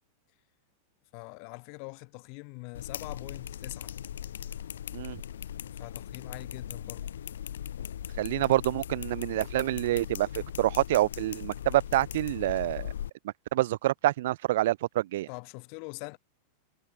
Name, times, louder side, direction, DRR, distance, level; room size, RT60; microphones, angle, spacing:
voice 1, 1.1-3.9 5.7-7.1 15.3-16.2, left 40 dB or more, 45° left, 1.6 m, -43 dB
sound 1, 2.7-13.1, left 10 dB, 65° left, 2.4 m, -39 dB
voice 2, 8.2-12.9 13.5-15.3, right 15 dB, 55° right, 0.5 m, -27 dB
figure-of-eight pair, 90°, 0 cm